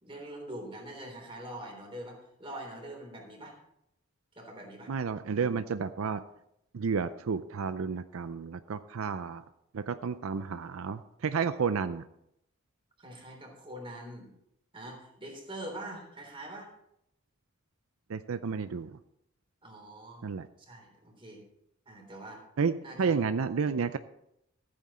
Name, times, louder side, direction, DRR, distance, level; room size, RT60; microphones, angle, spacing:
voice 1, 0.0-3.5 4.3-4.9 13.0-14.3 14.7-16.7 19.6-20.3 20.6-21.5 21.9-22.4 22.8-23.1, right 1 dB, 25° right, 1 dB, 3.5 m, -44 dB
voice 2, 4.9-6.2 6.7-9.4 9.7-12.0 18.1-19.0 20.2-20.5 22.6-22.7 23.0-24.0, right 5 dB, 80° right, 12 dB, 0.5 m, -31 dB
14.5 x 8.8 x 4.2 m, 0.78 s
head